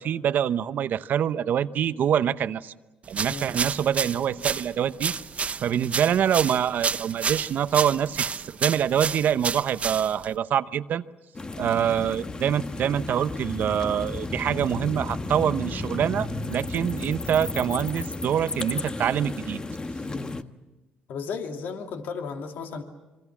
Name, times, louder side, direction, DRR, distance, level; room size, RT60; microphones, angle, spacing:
voice 1, 0.0-2.7 3.1-5.1 5.6-8.3 8.6-11.0 11.6-19.6, right 9 dB, 65° right, 13 dB, 0.8 m, -25 dB
sound 1, 3.1-10.4, right 5 dB, 40° right, 1.0 m, -30 dB
sound 2, 11.3-20.4, left 2 dB, 25° left, 1.3 m, -33 dB
voice 2, 20.1-20.5 21.1-22.8, left 5 dB, 75° left, 4 dB, 2.5 m, -35 dB
26.5 x 25.0 x 7.3 m, 1.1 s
supercardioid pair, 70°, 3 cm